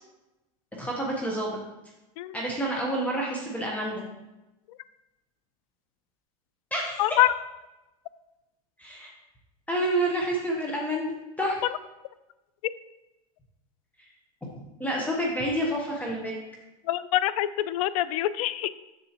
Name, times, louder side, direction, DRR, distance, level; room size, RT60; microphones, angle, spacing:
voice 1, 0.8-1.6 2.3-4.0 6.7-7.2 8.8-9.1 9.7-11.1 11.4-11.6 14.8-16.3, right 1 dB, 10° left, -2 dB, 1.0 m, -28 dB
voice 2, 7.0-7.3 16.9-18.8, left 14 dB, 70° left, 16 dB, 0.4 m, -25 dB
7.0 x 6.9 x 2.9 m, 0.99 s
supercardioid pair, 130°, 18 cm